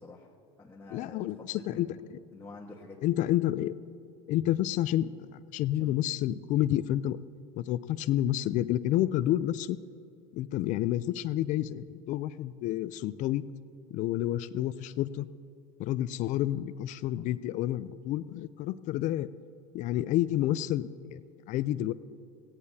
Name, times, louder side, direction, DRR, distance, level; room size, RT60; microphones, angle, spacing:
voice 1, 0.0-3.1 5.7-6.0, left 2 dB, 15° left, -3 dB, 1.3 m, -49 dB
voice 2, 0.9-1.9 3.0-3.8 4.3-7.2 7.6-9.8 10.3-13.4 13.9-15.3 15.8-19.3 19.7-21.2 21.5-21.9, left 13 dB, 50° left, 16 dB, 0.4 m, -29 dB
17.5 x 16.5 x 2.8 m, 2.4 s
supercardioid pair, 105°, 16 cm